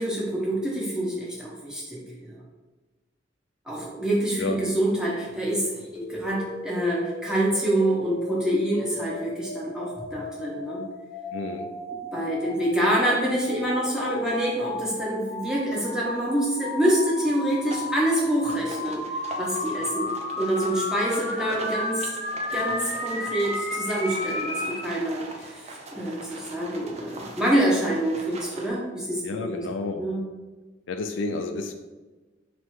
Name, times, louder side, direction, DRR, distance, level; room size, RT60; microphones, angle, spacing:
voice 1, 0.0-2.3 3.7-10.8 12.1-19.0 19.4-20.1 20.4-22.1 22.5-29.2 29.5-29.6 30.0-30.2, right 1 dB, 5° right, -6 dB, 0.9 m, -26 dB
sound 1, 6.0-24.8, left 2 dB, 35° left, 0.6 m, -34 dB
voice 2, 11.3-11.7 29.2-30.1 30.9-31.7, left 3 dB, 80° left, 6 dB, 0.4 m, -30 dB
sound 2, 17.6-28.7, right 2 dB, 35° right, 0.5 m, -42 dB
3.4 x 3.0 x 4.6 m, 1.2 s
head